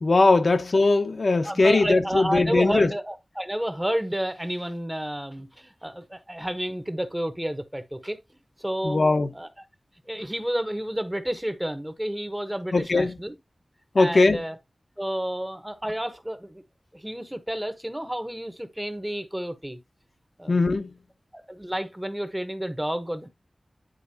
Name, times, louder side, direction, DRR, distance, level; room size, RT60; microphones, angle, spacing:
voice 1, 0.0-2.9 8.8-9.3 12.7-13.2 13.9-14.4 20.5-21.0, left 3 dB, 65° left, 0.9 m, -20 dB
voice 2, 1.4-8.2 8.6-9.0 9.3-9.5 10.1-13.4 14.0-14.5 15.0-16.6 16.9-19.8 20.4-20.6 21.3-23.3, equal, 10° right, 1.0 m, -30 dB
10.0 x 4.1 x 2.8 m
wide cardioid pair, 80°, 0 cm